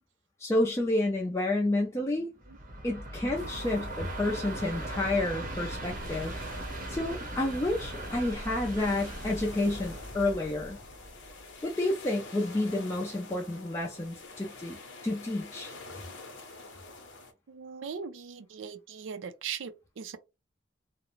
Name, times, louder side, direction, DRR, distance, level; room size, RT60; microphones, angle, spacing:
voice 1, 0.4-2.3 2.8-6.3 6.9-10.8 11.6-14.8 15.0-15.7, left 2 dB, 15° left, 0.3 m, -30 dB
Train, 2.4-11.6, right 1 dB, 45° right, 0.7 m, -39 dB
sound 1, 3.3-17.3, left 3 dB, 75° left, 0.7 m, -48 dB
voice 2, 17.5-20.2, right 6 dB, 80° right, 0.4 m, -39 dB
2.4 x 2.0 x 3.0 m
head